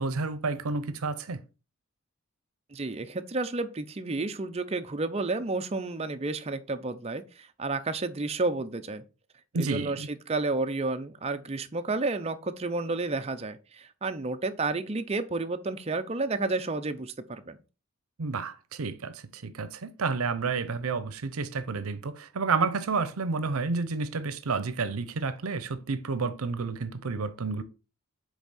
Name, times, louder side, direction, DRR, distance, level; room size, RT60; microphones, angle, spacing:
voice 1, 0.0-1.4 9.5-10.1 18.2-27.6, right 4 dB, 80° right, 0.7 m, -30 dB
voice 2, 2.7-9.0 9.6-17.6, right 3 dB, 30° right, 0.5 m, -31 dB
8.1 x 3.5 x 4.1 m
head